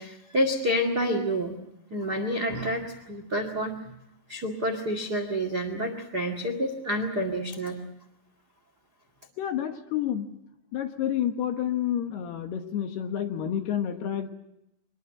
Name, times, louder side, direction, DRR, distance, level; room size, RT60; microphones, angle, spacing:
voice 1, 0.0-1.5 1.9-3.7 4.3-7.8, equal, 45° right, 6 dB, 1.2 m, -28 dB
voice 2, 9.4-10.3 10.7-14.3, left 10 dB, 70° left, 6 dB, 2.9 m, -29 dB
24.0 x 20.5 x 7.7 m, 0.84 s
omnidirectional pair, 5.6 m